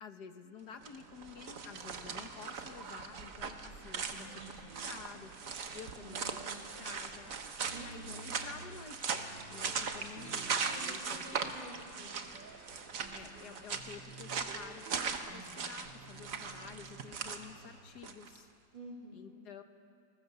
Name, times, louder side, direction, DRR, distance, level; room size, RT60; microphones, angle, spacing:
voice 1, 0.0-5.3 5.7-7.3 7.8-9.2 9.5-11.4 13.1-18.5 19.1-19.6, left 6 dB, 60° left, 7 dB, 1.7 m, -51 dB
sound 1, 0.7-18.4, right 5 dB, 50° right, 1.5 m, -40 dB
sound 2, 3.8-14.1, right 1 dB, 25° right, 3.1 m, -60 dB
sound 3, 4.1-5.6 6.1-18.3, right 4 dB, 70° right, 2.2 m, -54 dB
voice 2, 5.9-6.9 7.7-8.3 10.6-12.3 18.7-19.4, right 2 dB, 85° right, -1 dB, 3.8 m, -50 dB
29.0 x 20.5 x 6.8 m, 2.5 s
omnidirectional pair, 2.0 m